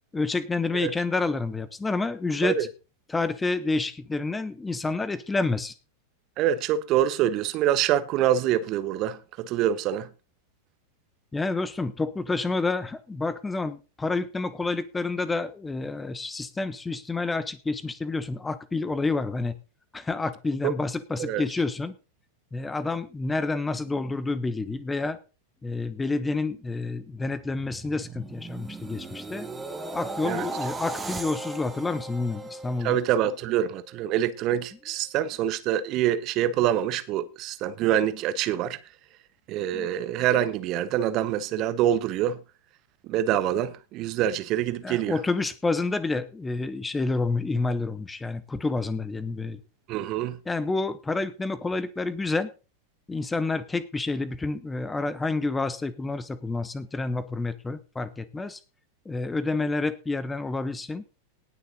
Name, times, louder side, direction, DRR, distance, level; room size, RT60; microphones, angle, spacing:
voice 1, 0.1-2.6 3.1-5.7 11.3-19.6 19.9-21.9 22.5-25.2 25.6-29.5 29.9-33.0 39.7-39.9 44.8-49.6 50.5-52.5 53.1-58.6 59.0-61.0, left 3 dB, 10° left, 1.2 m, -29 dB
voice 2, 6.4-10.1 20.6-20.7 21.2-21.4 30.2-30.5 32.8-38.8 39.5-42.4 43.1-45.2 49.9-50.4, right 11 dB, 40° right, 1.2 m, -25 dB
sound 1, 27.2-33.4 33.9-34.1, right 3 dB, 10° right, 1.9 m, -37 dB
19.0 x 6.6 x 4.0 m
figure-of-eight pair, 90°, 0 cm